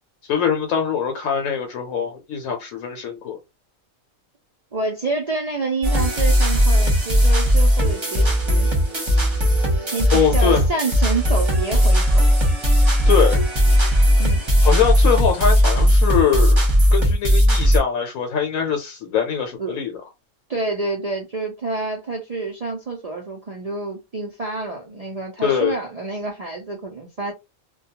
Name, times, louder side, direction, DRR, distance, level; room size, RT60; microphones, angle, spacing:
voice 1, 0.3-3.4 10.1-10.7 13.1-13.4 14.6-16.6 16.9-20.0 25.4-25.8, left 7 dB, 80° left, 1.0 m, -22 dB
voice 2, 4.7-8.7 9.9-12.3 14.2-14.4 19.6-19.8 20.5-27.3, right 3 dB, 65° right, 0.3 m, -28 dB
sound 1, 5.8-17.8, equal, 25° right, 0.8 m, -17 dB
2.3 x 2.2 x 2.8 m
omnidirectional pair, 1.5 m